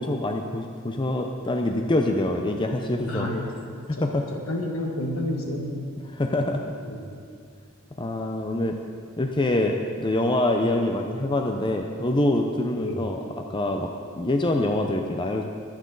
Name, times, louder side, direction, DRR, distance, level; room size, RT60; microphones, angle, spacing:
voice 1, 0.0-3.3 3.9-4.2 6.1-6.8 8.0-8.8 9.2-13.9 14.2-15.4, left 1 dB, 20° left, 3 dB, 0.7 m, -25 dB
voice 2, 3.1-5.7 6.8-7.1 12.8-13.1, left 1 dB, 70° left, 1 dB, 1.9 m, -31 dB
23.0 x 8.9 x 4.0 m, 2.2 s
head